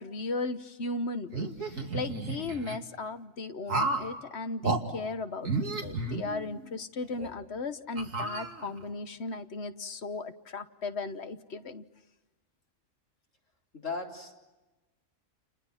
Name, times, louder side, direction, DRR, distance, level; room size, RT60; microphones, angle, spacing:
voice 1, 0.0-11.8, left 3 dB, 55° left, 11 dB, 1.4 m, -36 dB
sound 1, 1.3-2.8 3.7-4.1 4.6-4.8 5.4-6.7 7.2-7.3 8.0-8.9, right 3 dB, 85° right, 3.0 m, -32 dB
voice 2, 13.7-14.4, left 4 dB, 75° left, 0 dB, 4.3 m, -37 dB
30.0 x 30.0 x 5.9 m, 1.1 s
omnidirectional pair, 1.3 m